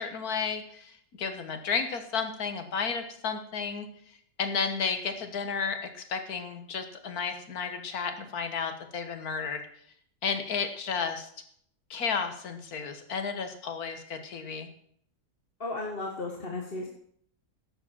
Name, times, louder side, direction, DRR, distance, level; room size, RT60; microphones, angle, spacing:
voice 1, 0.0-9.6 10.2-11.3 11.9-14.7, left 5 dB, 90° left, 8 dB, 1.9 m, -33 dB
voice 2, 15.6-16.9, left 2 dB, 40° left, 1 dB, 1.6 m, -34 dB
11.0 x 7.6 x 7.4 m, 0.63 s
omnidirectional pair, 1.5 m